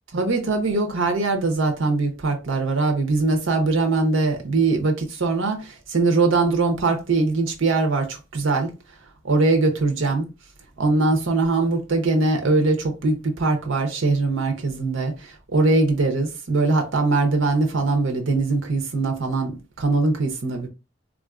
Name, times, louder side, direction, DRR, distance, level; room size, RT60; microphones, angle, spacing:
voice 1, 0.1-8.7 9.2-10.3 10.8-20.7, right 3 dB, 85° right, 0.8 m, -21 dB
3.7 x 2.5 x 2.4 m
head